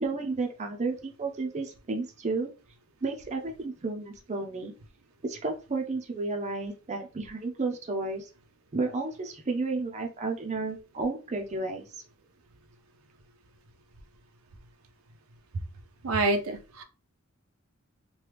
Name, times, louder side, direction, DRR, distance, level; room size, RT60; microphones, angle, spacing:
voice 1, 0.0-2.5 3.0-4.7 5.2-8.3 8.7-11.9, right 3 dB, 35° right, 3 dB, 0.5 m, -32 dB
voice 2, 16.0-16.8, right 2 dB, 80° right, 5 dB, 0.5 m, -27 dB
3.0 x 2.2 x 3.3 m, 0.33 s
head